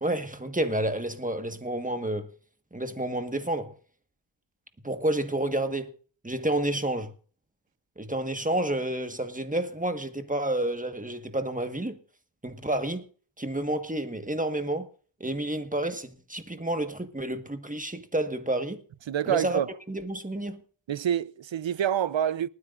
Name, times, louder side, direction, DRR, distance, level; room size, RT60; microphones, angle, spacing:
voice 1, 0.0-2.3 2.7-3.7 4.8-5.9 6.2-7.1 8.0-12.0 12.4-13.1 13.4-14.9 15.2-18.8 19.2-19.6 19.9-20.6, right 1 dB, 15° right, 1.4 m, -30 dB
voice 2, 19.1-19.7 20.9-22.5, right 10 dB, 75° right, 0.6 m, -27 dB
28.0 x 9.5 x 2.5 m
wide cardioid pair, 65°, 45 cm